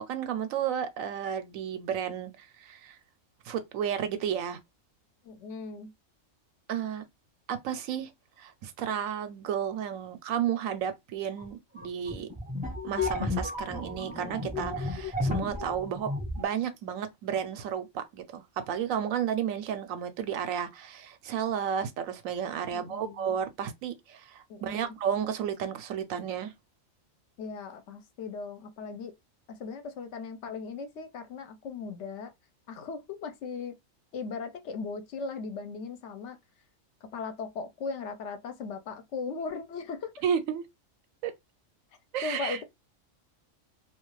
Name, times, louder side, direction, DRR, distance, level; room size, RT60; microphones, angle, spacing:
voice 1, 0.0-3.0 3.4-4.6 6.7-7.0 7.5-8.1 8.4-12.3 12.8-16.1 16.4-26.5 40.2-40.6 41.2-41.3 42.1-42.6, right 8 dB, 90° right, 1.0 m, -32 dB
voice 2, 5.2-5.9 22.7-23.4 24.5-25.0 27.4-29.1 29.5-32.3 32.7-33.8 34.1-36.4 37.0-40.1 42.2-42.6, left 4 dB, 70° left, 0.9 m, -38 dB
sound 1, 11.4-11.5 11.8-16.4, left 2 dB, 10° right, 0.5 m, -33 dB
2.4 x 2.3 x 3.0 m
omnidirectional pair, 1.3 m